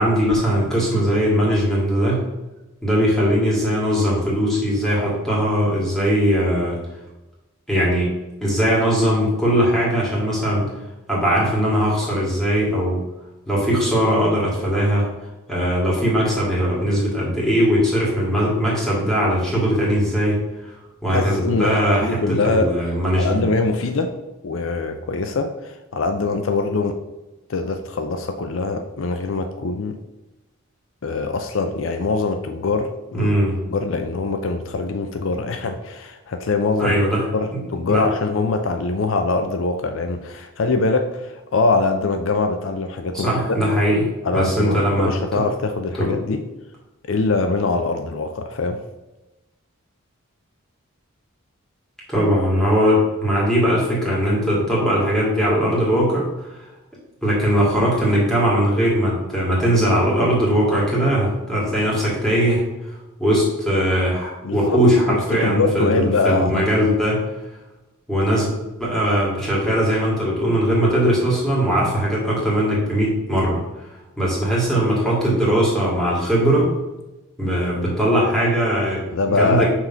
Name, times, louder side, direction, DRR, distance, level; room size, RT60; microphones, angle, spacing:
voice 1, 0.0-2.2 2.8-6.8 7.7-8.1 8.4-10.7 11.1-13.0 13.5-15.1 15.5-20.7 21.0-23.4 33.1-33.6 36.8-37.3 37.5-37.6 37.9-38.1 43.1-45.1 46.0-46.1 52.1-56.7 57.2-67.2 68.1-68.5 68.8-73.9 74.2-76.7 77.4-79.7, equal, ahead, -6 dB, 2.1 m, -20 dB
voice 2, 21.1-22.7 23.2-24.1 24.4-27.0 27.5-30.0 31.0-33.3 33.7-37.0 37.3-43.6 44.2-46.4 47.1-48.8 64.4-64.8 65.1-66.9 79.1-79.7, left 3 dB, 60° left, 7 dB, 0.5 m, -23 dB
5.8 x 3.7 x 5.6 m, 1.0 s
head